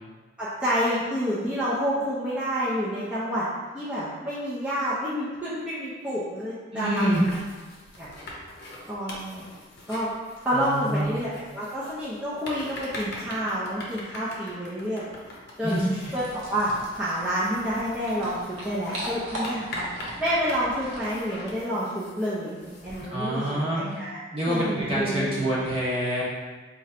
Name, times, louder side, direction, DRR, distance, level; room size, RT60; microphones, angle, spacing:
voice 1, 0.4-3.5 3.7-7.2 8.0-8.1 8.9-9.4 9.9-10.1 10.4-15.1 15.6-19.8 20.2-23.4 23.7-24.2 24.5-25.4, equal, 5° right, -11 dB, 0.5 m, -28 dB
voice 2, 6.7-7.2 10.5-11.1 15.6-16.1 23.1-24.0 24.3-26.2, right 1 dB, 30° right, -7 dB, 0.9 m, -26 dB
sound 1, 6.8-23.1, left 1 dB, 50° left, 0.7 m, -43 dB
sound 2, 16.0-21.6, equal, 85° right, 0.9 m, -39 dB
3.0 x 2.5 x 4.3 m, 1.4 s
head